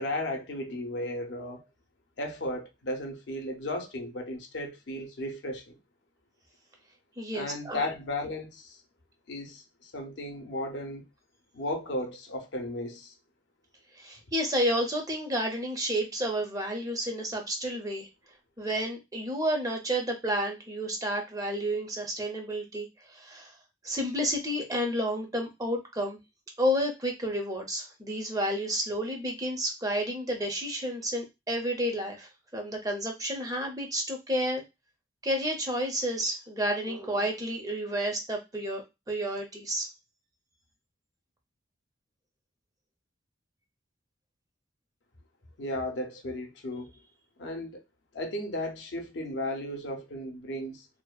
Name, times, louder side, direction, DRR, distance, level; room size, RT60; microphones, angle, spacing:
voice 1, 0.0-1.6 2.2-5.7 7.3-8.8 9.3-11.1 11.5-13.1 45.6-46.9 47.4-47.8 48.1-50.9, left 1 dB, 70° left, 0.5 m, -35 dB
voice 2, 7.2-7.9 14.0-18.1 18.6-23.5 23.8-26.2 26.6-34.6 35.2-39.9, equal, 20° right, 0.5 m, -31 dB
2.5 x 2.1 x 2.3 m
head